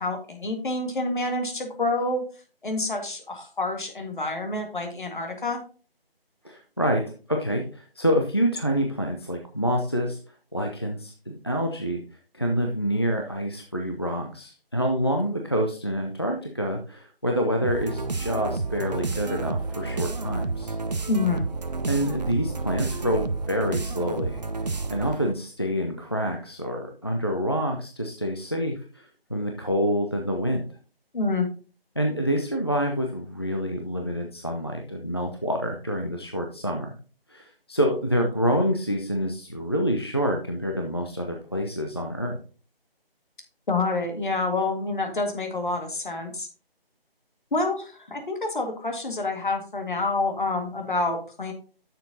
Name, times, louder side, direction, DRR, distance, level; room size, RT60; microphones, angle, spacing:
voice 1, 0.0-2.2 2.6-5.6 21.1-21.5 31.1-31.5 43.7-46.5 47.5-51.5, left 2 dB, 55° left, 4 dB, 1.8 m, -27 dB
voice 2, 6.4-7.0 7.3-10.2 10.5-12.0 12.3-20.7 21.9-24.4 24.9-30.7 32.0-36.9 37.3-42.4, equal, 25° left, 2 dB, 0.5 m, -27 dB
sound 1, 17.6-25.3, right 3 dB, 45° right, 0.6 m, -30 dB
9.6 x 6.7 x 2.7 m, 0.37 s
figure-of-eight pair, 155°, 30 cm